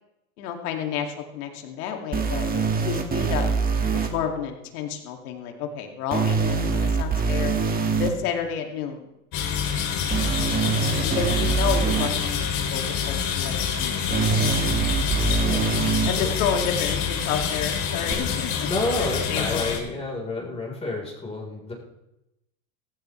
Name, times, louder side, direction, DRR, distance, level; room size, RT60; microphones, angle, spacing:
voice 1, 0.4-3.5 3.9-7.5 8.0-9.1 9.7-10.1 11.0-14.4 16.0-18.7 19.0-19.7, left 7 dB, 80° left, 3 dB, 2.6 m, -30 dB
sound 1, 2.1-4.1 6.1-8.1 10.1-12.1 14.1-16.1 18.1-18.2, right 5 dB, 20° right, 1.7 m, -24 dB
sound 2, 9.3-19.8, left 7 dB, 50° left, 3.7 m, -27 dB
voice 2, 18.6-21.7, left 2 dB, 15° left, -1 dB, 4.2 m, -29 dB
17.0 x 15.5 x 3.3 m, 0.90 s
supercardioid pair, 115°, 44 cm